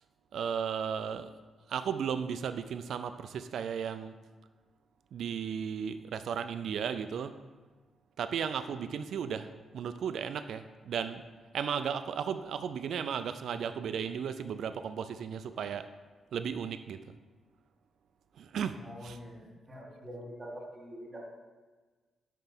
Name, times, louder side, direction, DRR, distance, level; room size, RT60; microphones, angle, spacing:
voice 1, 0.3-1.3 1.7-4.2 5.1-7.4 8.2-11.2 11.5-15.9 16.3-17.0 18.4-18.8 19.0-19.2, right 7 dB, 75° right, 10 dB, 0.3 m, -35 dB
voice 2, 18.8-21.2, equal, 20° right, -6 dB, 1.8 m, -45 dB
5.5 x 4.6 x 5.8 m, 1.3 s
cardioid pair, 105°, 0 cm